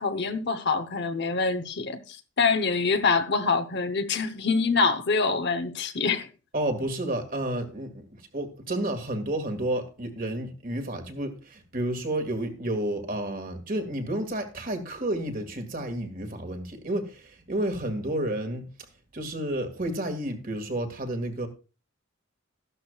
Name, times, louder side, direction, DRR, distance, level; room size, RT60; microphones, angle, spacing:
voice 1, 0.0-6.3, left 4 dB, 55° left, 0.9 m, -25 dB
voice 2, 6.5-18.9 19.1-21.5, right 1 dB, 45° right, 2.1 m, -31 dB
13.5 x 12.0 x 2.4 m
head